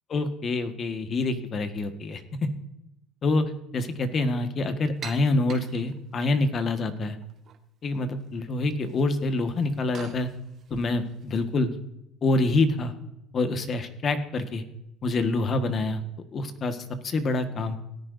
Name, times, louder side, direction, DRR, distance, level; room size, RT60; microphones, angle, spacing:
voice 1, 0.1-2.2 3.2-3.5 3.7-7.2 7.8-10.3 10.7-11.7 12.2-12.9 13.3-14.6 15.0-16.0 16.3-17.8, left 2 dB, 40° left, 8 dB, 1.6 m, -26 dB
sound 1, 5.0-6.3 7.0-7.6 7.8-8.4 8.7-11.4, right 7 dB, 50° right, 1.5 m, -45 dB
17.5 x 10.0 x 2.7 m, 0.83 s
supercardioid pair, 95°, 0 cm